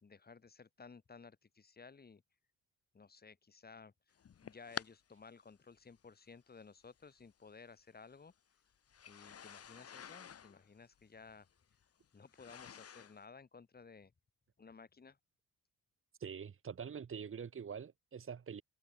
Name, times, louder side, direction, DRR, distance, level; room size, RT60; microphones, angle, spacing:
voice 1, 0.0-2.2 2.9-4.1 4.4-8.3 9.1-11.5 12.1-14.1 14.6-15.2, left 5 dB, 30° left, 4.9 m, -56 dB
sound 1, 4.2-4.9 5.9-6.0 7.2-7.3 8.9-13.2, left 8 dB, 50° left, 3.8 m, -49 dB
voice 2, 16.2-18.6, right 7 dB, 45° right, 3.3 m, -45 dB
cardioid pair, 90°, 30 cm